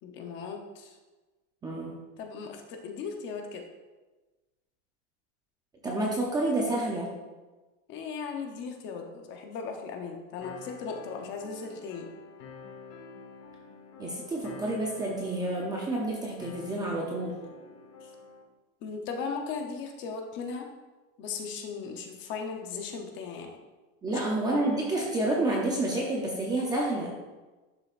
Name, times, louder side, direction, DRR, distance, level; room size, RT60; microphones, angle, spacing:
voice 1, 0.0-1.0 2.2-3.6 7.9-12.1 18.0-18.1 18.8-20.7 21.2-23.5 24.1-24.2, left 5 dB, 30° left, 3 dB, 0.7 m, -37 dB
voice 2, 1.6-2.0 5.8-7.1 14.0-17.4 24.0-27.1, right 2 dB, 10° right, -3 dB, 0.5 m, -29 dB
sound 1, 10.4-18.4, left 4 dB, 65° left, 1.4 m, -48 dB
11.5 x 6.6 x 2.5 m, 1.2 s
supercardioid pair, 175°, 38 cm